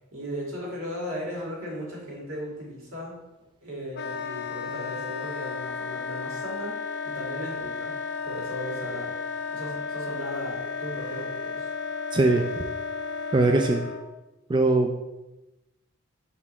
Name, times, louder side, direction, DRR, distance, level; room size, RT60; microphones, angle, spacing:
voice 1, 0.1-3.2 3.6-7.9 8.2-9.1 9.5-11.7, equal, 80° right, -3 dB, 2.1 m, -37 dB
Wind instrument woodwind instrument, 3.9-14.1, left 5 dB, 60° left, 0.5 m, -33 dB
voice 2, 12.1-12.4 13.3-13.8 14.5-14.9, right 2 dB, 25° right, 4 dB, 0.3 m, -20 dB
5.7 x 4.2 x 4.3 m, 1.0 s
head